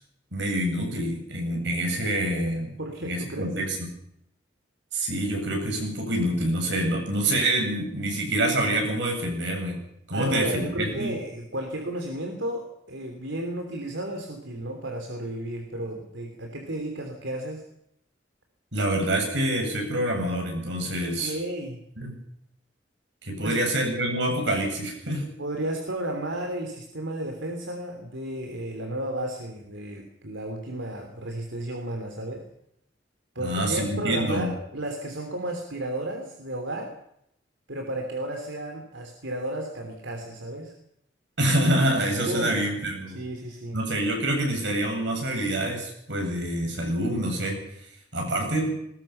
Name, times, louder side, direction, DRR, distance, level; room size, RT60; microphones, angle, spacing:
voice 1, 0.3-2.7 3.0-3.9 4.9-9.8 10.1-11.1 18.7-21.4 22.0-22.1 23.2-25.3 33.4-34.5 41.4-43.2 43.7-47.6 48.1-48.8, right 1 dB, 70° right, 2 dB, 8.0 m, -26 dB
voice 2, 2.8-3.6 10.1-17.6 21.2-21.8 23.4-23.6 25.4-32.4 33.3-36.9 37.7-40.7 42.3-42.6 43.1-43.8, right 1 dB, 85° right, 3 dB, 3.4 m, -33 dB
21.0 x 21.0 x 5.9 m, 0.76 s
head